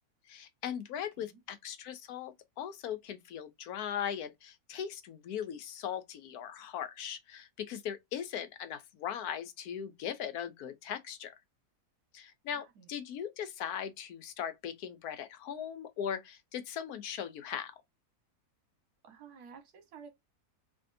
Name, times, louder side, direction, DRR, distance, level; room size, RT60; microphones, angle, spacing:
voice 1, 0.3-11.4 12.1-17.7, left 9 dB, 75° left, 1.1 m, -39 dB
voice 2, 0.9-1.4 12.5-12.9 19.0-20.1, right 6 dB, 75° right, 1.5 m, -53 dB
3.5 x 2.7 x 2.5 m
omnidirectional pair, 1.7 m